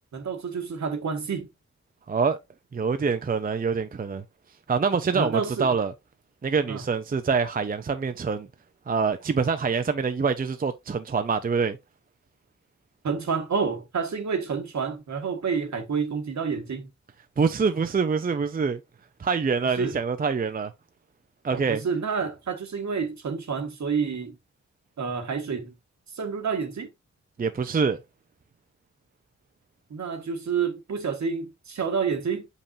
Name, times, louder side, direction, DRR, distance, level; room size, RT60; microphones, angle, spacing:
voice 1, 0.0-1.5 5.1-5.7 6.7-6.8 13.0-16.9 19.6-20.0 21.5-24.4 25.0-25.7 26.1-26.9 29.9-32.5, right 5 dB, 65° right, 1.6 m, -29 dB
voice 2, 2.1-2.4 2.7-4.2 4.7-5.9 6.4-8.5 8.9-11.8 17.4-18.8 19.2-20.7 21.4-21.8 27.4-28.0, right 5 dB, 30° right, 0.5 m, -25 dB
7.1 x 5.5 x 2.6 m
wide cardioid pair, 140°, 31 cm